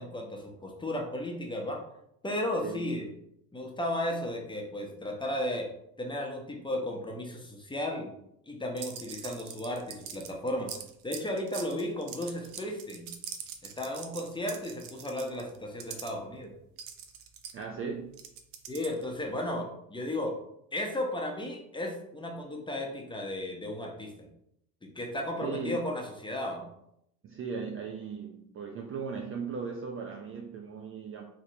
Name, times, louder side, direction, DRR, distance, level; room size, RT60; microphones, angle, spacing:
voice 1, 0.0-1.8 2.2-3.1 3.5-5.7 6.0-8.1 8.5-10.7 11.0-13.1 13.8-16.5 18.7-20.4 20.7-24.3 24.8-26.7, left 1 dB, 10° left, 1 dB, 0.8 m, -34 dB
sound 1, 8.8-16.1 16.8-19.1, right 8 dB, 80° right, 0.6 m, -43 dB
voice 2, 17.5-18.2 25.4-25.8 27.2-31.2, right 5 dB, 30° right, 2 dB, 0.4 m, -37 dB
3.1 x 2.9 x 2.8 m, 0.77 s
hypercardioid pair, 60°, 44 cm